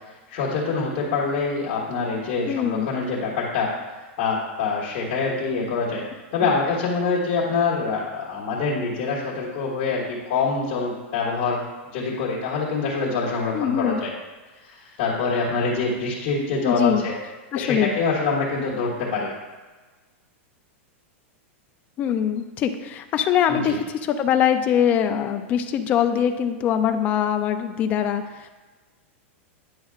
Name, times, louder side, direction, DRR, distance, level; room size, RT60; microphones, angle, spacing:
voice 1, 0.3-3.8 4.2-6.0 6.3-11.6 11.9-14.1 14.6-17.2 17.5-19.3 23.5-23.8, left 4 dB, 40° left, -6 dB, 1.5 m, -25 dB
voice 2, 2.5-2.9 13.5-14.0 16.7-17.1 17.5-18.0 22.0-28.5, left 9 dB, 20° left, 8 dB, 0.4 m, -23 dB
9.5 x 6.1 x 2.4 m, 1.3 s
supercardioid pair, 170°, 7 cm